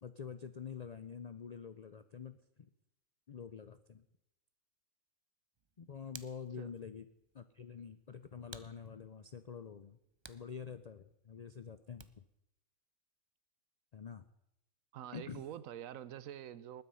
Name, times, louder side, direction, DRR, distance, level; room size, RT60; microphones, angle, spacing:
voice 1, 0.0-2.7 3.3-4.0 5.8-7.1 7.3-10.0 10.3-12.1 13.9-14.2 15.1-15.4, left 7 dB, 60° left, 12 dB, 0.4 m, -47 dB
Hands, 5.5-12.4, right 4 dB, 35° right, 0.4 m, -59 dB
voice 2, 14.9-16.8, right 10 dB, 75° right, 17 dB, 1.1 m, -46 dB
20.0 x 9.5 x 5.6 m, 0.84 s
omnidirectional pair, 1.4 m